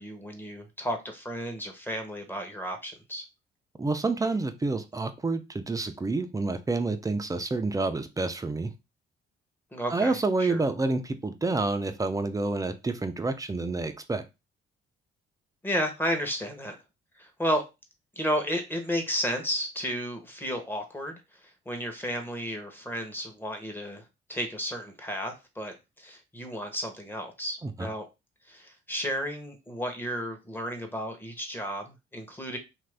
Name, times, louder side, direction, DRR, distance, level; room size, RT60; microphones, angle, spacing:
voice 1, 0.0-3.2 9.7-10.6 15.6-16.7 17.2-17.6 18.2-24.0 24.3-28.1 28.5-32.6, equal, 10° left, 4 dB, 0.9 m, -33 dB
voice 2, 3.8-8.7 9.9-14.2 27.6-27.9, right 3 dB, 15° right, 9 dB, 0.5 m, -28 dB
2.8 x 2.6 x 3.3 m, 0.25 s
cardioid pair, 90°, 20 cm